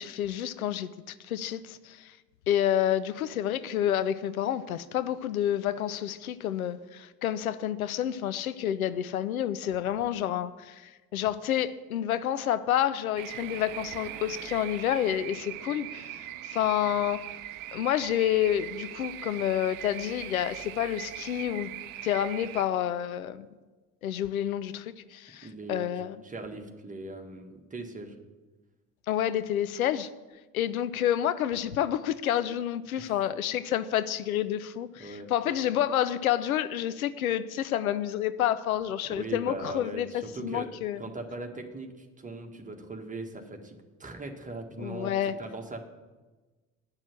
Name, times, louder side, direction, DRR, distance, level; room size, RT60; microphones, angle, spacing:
voice 1, 0.0-2.1 2.5-10.8 11.1-17.2 17.7-21.7 22.0-23.5 24.0-26.2 29.1-30.1 30.5-41.0 44.8-45.3, left 11 dB, 80° left, 14 dB, 0.5 m, -29 dB
sound 1, 13.2-22.6, right 13 dB, 50° right, 0.6 m, -40 dB
voice 2, 25.4-25.9 26.2-28.1 33.0-33.2 35.0-35.3 39.0-40.7 41.0-45.8, right 2 dB, 20° right, 3 dB, 1.6 m, -40 dB
9.7 x 6.1 x 8.4 m, 1.2 s
figure-of-eight pair, 55°, 42 cm